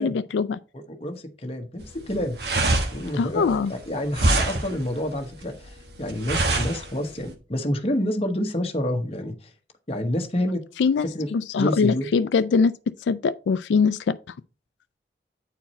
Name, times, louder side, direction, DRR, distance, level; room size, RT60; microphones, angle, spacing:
voice 1, 0.0-0.6 3.1-3.7 10.8-12.7 13.0-14.2, left 5 dB, 90° left, 0.4 m, -22 dB
voice 2, 0.7-2.4 2.9-9.5 9.9-10.6 11.0-12.1, left 1 dB, 35° left, 1.0 m, -28 dB
sound 1, 1.8-7.3, right 2 dB, 65° right, 1.3 m, -25 dB
8.9 x 4.6 x 4.3 m
head